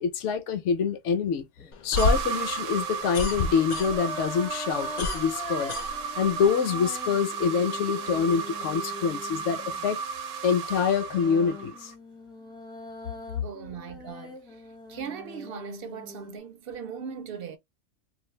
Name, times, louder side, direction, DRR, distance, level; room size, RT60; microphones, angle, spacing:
voice 1, 0.0-1.5 1.8-5.8 6.2-10.0 10.4-11.9, left 6 dB, 80° left, 0.9 m, -26 dB
sound 1, 1.6-1.9 3.3-9.9 10.8-16.4, left 1 dB, 5° left, 0.4 m, -43 dB
sound 2, 1.7-4.3 4.6-6.5, left 3 dB, 65° left, 0.4 m, -29 dB
sound 3, 2.0-11.9, right 5 dB, 85° right, 0.9 m, -34 dB
voice 2, 13.4-14.6 14.9-17.6, right 7 dB, 60° right, 0.7 m, -39 dB
2.5 x 2.3 x 3.1 m
omnidirectional pair, 1.2 m